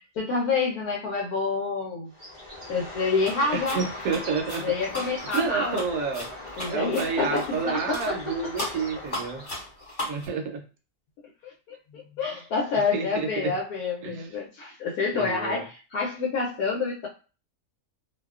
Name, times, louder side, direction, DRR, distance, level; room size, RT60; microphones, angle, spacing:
voice 1, 0.2-2.1 2.7-3.8 4.6-5.8 6.6-8.2 11.9-17.1, left 4 dB, 75° left, -3 dB, 1.1 m, -28 dB
Bird, 2.1-9.8, left 1 dB, 45° right, 0.3 m, -40 dB
sound 1, 3.2-3.4 3.6-7.6 7.9-8.1 8.6-10.3, left 1 dB, 35° left, 1.2 m, -36 dB
voice 2, 3.5-4.7 5.3-6.3 6.7-9.5 10.1-10.6 12.7-13.5 14.0-14.3 15.1-15.6, right 5 dB, 70° right, 4 dB, 1.0 m, -29 dB
2.7 x 2.2 x 2.3 m, 0.34 s
omnidirectional pair, 1.7 m